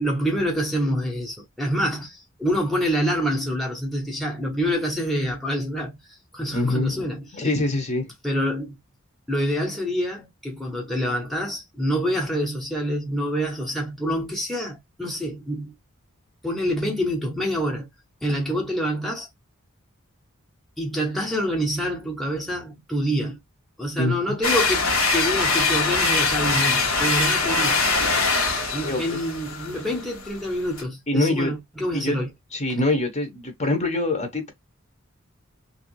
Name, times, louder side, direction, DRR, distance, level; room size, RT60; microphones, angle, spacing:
voice 1, 0.0-7.5 8.2-8.8 9.3-15.7 16.4-17.9 18.2-19.3 20.8-23.4 23.8-27.8 28.7-32.3, equal, ahead, 1.0 m, -26 dB
voice 2, 6.5-8.1 24.0-24.2 28.8-29.2 31.1-31.5 31.9-32.2 32.5-34.5, left 2 dB, 30° left, 1.1 m, -24 dB
sound 1, 24.4-30.8, left 4 dB, 70° left, 1.3 m, -23 dB
3.2 x 2.7 x 3.1 m
head